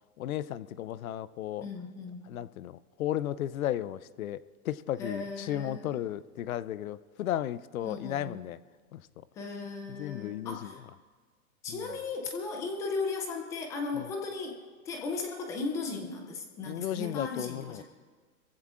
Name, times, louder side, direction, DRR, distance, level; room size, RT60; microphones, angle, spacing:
voice 1, 0.2-1.7 2.3-4.4 4.6-8.6 8.9-9.1 9.9-10.7 11.7-11.8 13.9-14.1 16.7-17.8, left 12 dB, 70° left, 18 dB, 0.7 m, -34 dB
voice 2, 1.6-2.2 5.0-6.0 7.8-8.4 9.3-10.8 11.6-14.6 14.8-17.8, left 4 dB, 10° left, 3 dB, 0.3 m, -36 dB
27.0 x 15.0 x 2.5 m, 1.5 s
hypercardioid pair, 125°, 44 cm